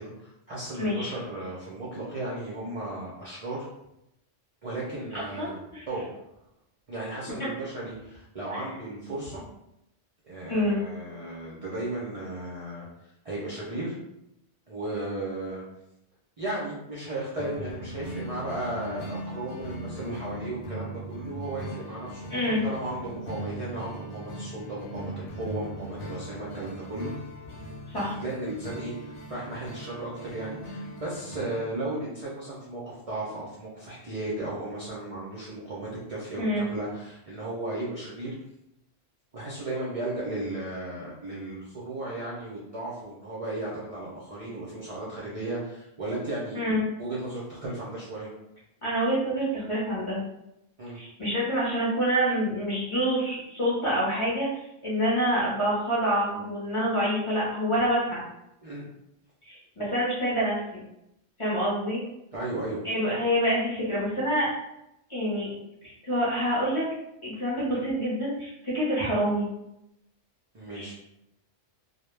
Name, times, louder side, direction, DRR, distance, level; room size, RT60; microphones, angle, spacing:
voice 1, 0.0-3.7 4.6-5.6 5.9-6.1 6.9-9.4 10.2-14.0 14.7-15.6 16.4-27.1 28.2-38.3 39.3-48.3 50.8-51.0 58.6-58.9 62.3-62.8 70.5-70.9, right 2 dB, 50° right, -6 dB, 0.4 m, -35 dB
voice 2, 0.8-1.1 5.1-5.9 8.5-8.6 10.5-10.8 22.3-22.6 27.9-28.1 36.4-36.6 46.5-46.8 48.8-50.2 50.9-58.2 59.4-60.8 61.4-62.0 62.8-64.5 65.1-65.5 65.8-66.9 67.2-69.5 70.7-70.9, equal, 35° left, -7 dB, 0.6 m, -27 dB
sound 1, 17.4-31.7, equal, 70° left, 0.8 m, -39 dB
2.2 x 2.1 x 3.1 m, 0.85 s
omnidirectional pair, 1.3 m